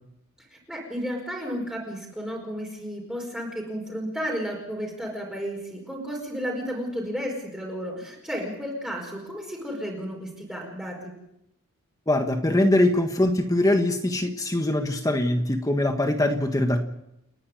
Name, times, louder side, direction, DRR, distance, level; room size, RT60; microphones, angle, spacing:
voice 1, 0.4-11.1, equal, 5° right, -2 dB, 4.9 m, -33 dB
voice 2, 12.1-16.8, left 1 dB, 15° left, 5 dB, 1.4 m, -22 dB
30.0 x 11.0 x 9.4 m, 0.84 s
head